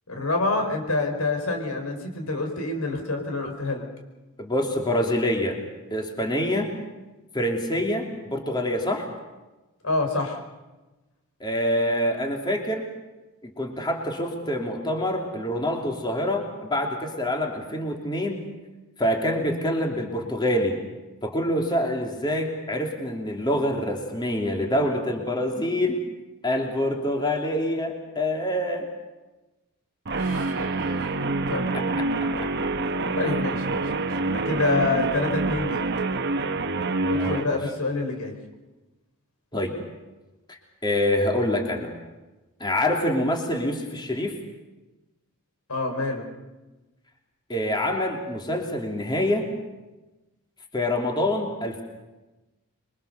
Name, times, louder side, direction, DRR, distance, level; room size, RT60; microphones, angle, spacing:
voice 1, 0.1-3.9 9.8-10.4 30.2-31.0 31.5-31.7 33.1-35.8 37.1-38.3 45.7-46.3, left 2 dB, 85° left, 4 dB, 4.6 m, -27 dB
voice 2, 4.4-5.6 5.9-6.7 7.3-9.1 11.4-12.8 13.4-18.4 19.0-20.8 21.2-26.0 26.4-28.9 31.7-32.1 32.4-32.5 37.1-37.6 39.5-39.8 40.5-41.9 42.6-44.4 47.5-49.5 50.7-51.8, left 1 dB, 20° left, 1 dB, 3.0 m, -26 dB
Guitar, 30.1-37.5, right 3 dB, 50° right, 1.2 m, -26 dB
27.0 x 23.5 x 6.8 m, 1.1 s
head